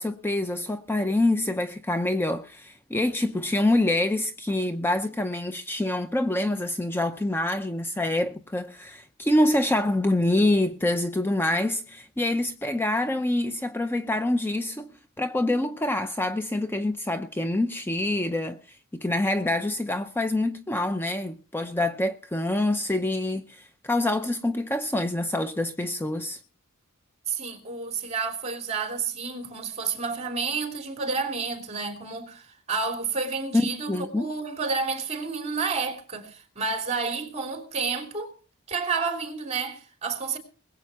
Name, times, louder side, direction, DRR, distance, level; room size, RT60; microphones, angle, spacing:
voice 1, 0.0-14.9 15.2-26.4 33.5-34.3, left 1 dB, 10° left, 0.6 m, -26 dB
voice 2, 27.3-38.3 38.7-40.4, right 4 dB, 30° right, 3.2 m, -30 dB
21.0 x 8.1 x 5.7 m
head